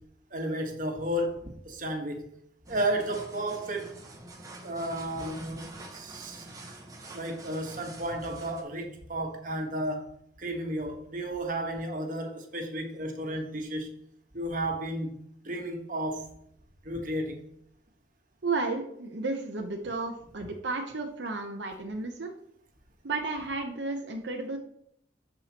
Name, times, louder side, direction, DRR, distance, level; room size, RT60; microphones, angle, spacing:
voice 1, 0.3-2.3 2.7-3.9 4.6-6.5 7.1-10.1 10.4-13.9 14.3-15.2 15.4-16.3 16.8-17.4, right 1 dB, 45° right, 1.3 m, -33 dB
sound 1, 2.6-8.6, right 2 dB, 20° right, 1.1 m, -46 dB
voice 2, 18.4-22.3 23.0-24.6, right 3 dB, 70° right, 0.9 m, -33 dB
13.5 x 4.8 x 2.9 m
head